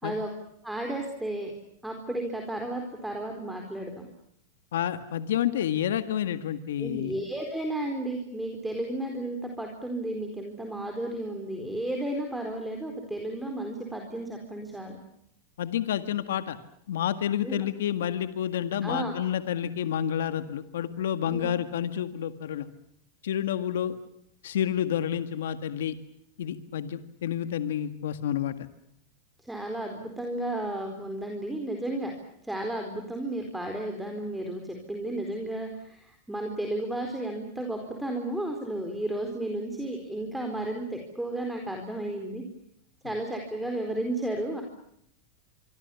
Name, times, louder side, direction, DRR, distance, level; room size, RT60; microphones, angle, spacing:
voice 1, 0.6-1.5 1.8-4.0 6.8-15.0 17.4-17.6 18.8-19.2 21.3-21.5 29.4-32.1 32.4-42.4 43.0-44.6, right 1 dB, 5° right, 3 dB, 4.3 m, -33 dB
voice 2, 4.7-7.2 15.6-16.6 16.9-22.7 23.2-24.0 24.4-26.0 26.4-28.7, left 10 dB, 85° left, 11 dB, 1.8 m, -29 dB
26.5 x 25.0 x 7.1 m, 0.72 s
supercardioid pair, 135°, 0 cm